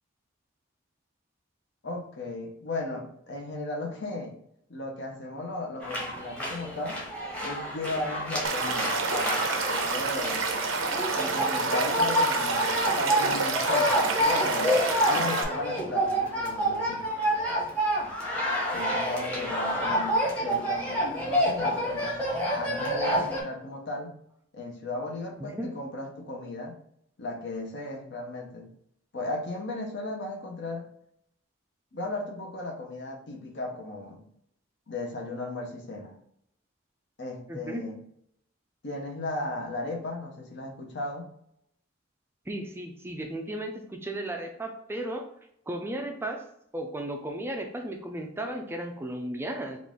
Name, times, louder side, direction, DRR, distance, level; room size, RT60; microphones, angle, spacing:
voice 1, 1.8-4.4 4.7-7.0 7.4-10.5 11.1-14.8 15.1-17.0 18.7-24.1 24.5-26.7 27.2-28.7 29.1-30.9 31.9-34.2 34.9-36.2 37.2-38.0 38.8-41.3, left 2 dB, 60° left, 2 dB, 0.8 m, -35 dB
sound 1, 5.8-23.4, equal, 5° left, 0.9 m, -28 dB
Stream / Liquid, 8.4-15.4, right 4 dB, 85° right, 0.7 m, -29 dB
voice 2, 37.5-37.8 42.5-43.7 44.0-45.3 45.7-46.4 46.7-49.8, right 1 dB, 10° right, 3 dB, 0.4 m, -34 dB
3.9 x 2.5 x 3.6 m, 0.71 s
head